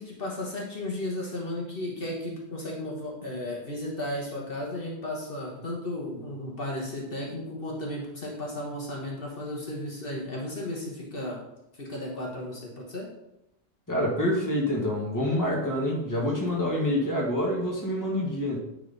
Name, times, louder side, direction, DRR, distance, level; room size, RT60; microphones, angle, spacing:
voice 1, 0.0-11.4 11.8-13.1, left 1 dB, 55° left, -2 dB, 1.6 m, -34 dB
voice 2, 13.9-18.6, left 1 dB, 15° left, -3 dB, 1.6 m, -27 dB
10.0 x 3.9 x 4.1 m, 0.85 s
omnidirectional pair, 1.1 m